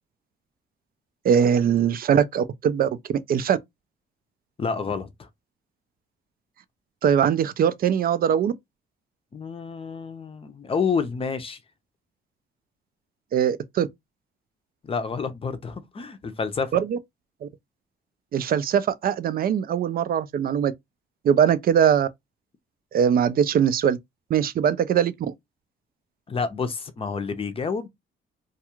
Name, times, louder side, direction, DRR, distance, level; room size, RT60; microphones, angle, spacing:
voice 1, 1.2-3.6 7.0-8.5 13.3-13.9 16.7-17.0 17.4-17.5 18.3-20.7 21.2-22.1 22.9-24.0 24.3-25.3, right 8 dB, 50° right, 0.4 m, -21 dB
voice 2, 4.6-5.3 9.3-11.6 14.8-16.8 26.3-27.9, left 5 dB, 30° left, 0.6 m, -29 dB
2.3 x 2.3 x 2.9 m
cardioid pair, 90°, 20 cm